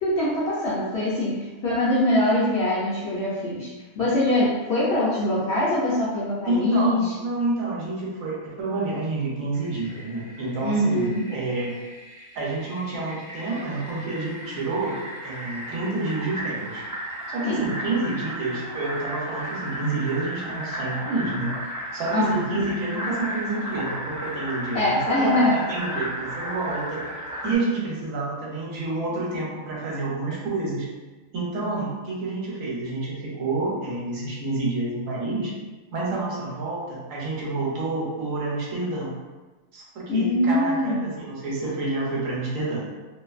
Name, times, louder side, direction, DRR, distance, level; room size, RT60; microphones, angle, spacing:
voice 1, 0.0-7.0 10.6-11.2 17.4-17.6 22.1-22.6 24.7-25.6 40.1-41.1, left 1 dB, 65° left, -7 dB, 0.7 m, -23 dB
voice 2, 6.5-11.8 12.3-15.0 15.2-16.8 17.3-21.5 21.9-27.0 27.4-30.9 31.3-35.5 35.9-39.1 39.7-42.9, right 2 dB, 70° right, -4 dB, 1.0 m, -28 dB
Fill (with liquid), 9.5-27.5, equal, 20° right, 0.5 m, -35 dB
2.6 x 2.4 x 2.3 m, 1.2 s
omnidirectional pair, 1.5 m